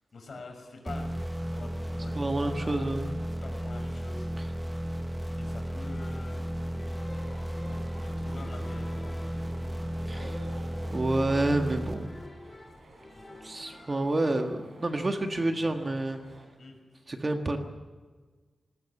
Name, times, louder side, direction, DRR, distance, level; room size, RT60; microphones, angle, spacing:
voice 1, 0.1-1.2 1.5-3.0 3.4-4.3 5.3-6.5 7.9-9.2 10.0-10.3 16.6-16.8, left 3 dB, 50° left, 3 dB, 6.2 m, -46 dB
sound 1, 0.9-12.6, equal, 10° right, 1.1 m, -34 dB
voice 2, 2.1-3.1 10.1-10.3 10.9-12.1 13.4-16.2 17.1-17.6, right 2 dB, 25° right, 5 dB, 1.6 m, -28 dB
sound 2, 5.9-14.4, left 2 dB, 25° left, 2.2 m, -49 dB
sound 3, 7.1-16.5, right 2 dB, 55° right, 4.2 m, -52 dB
20.0 x 19.5 x 9.8 m, 1.4 s
wide cardioid pair, 155°, 0 cm